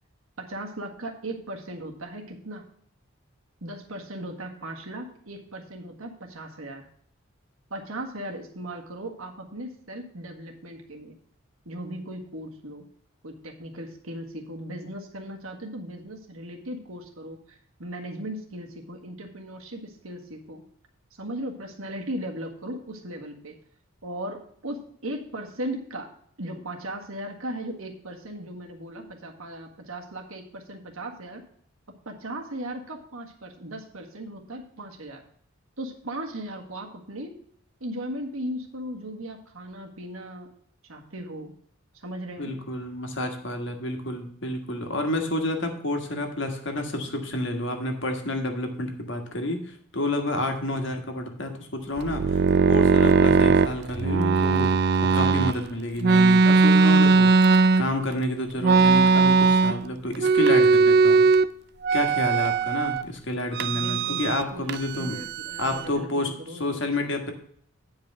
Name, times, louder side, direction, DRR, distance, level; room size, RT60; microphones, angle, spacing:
voice 1, 0.4-2.6 3.6-6.9 7.7-11.2 11.6-12.9 13.2-20.6 21.2-23.5 24.0-26.1 26.4-31.4 32.0-35.2 35.8-37.3 37.8-40.5 40.9-41.5 41.9-42.6 63.7-67.1, right 1 dB, 80° right, 2 dB, 1.7 m, -37 dB
voice 2, 42.4-52.4 52.7-54.7 55.0-61.2 61.9-65.2 65.6-66.3 66.6-67.3, left 1 dB, 55° left, 4 dB, 1.5 m, -29 dB
sound 1, 52.0-55.6 56.0-58.1 58.6-59.9 60.2-61.5 61.8-63.0 63.5-64.4 64.7-65.9, right 4 dB, 50° right, 0.4 m, -19 dB
9.4 x 4.9 x 6.4 m, 0.63 s
head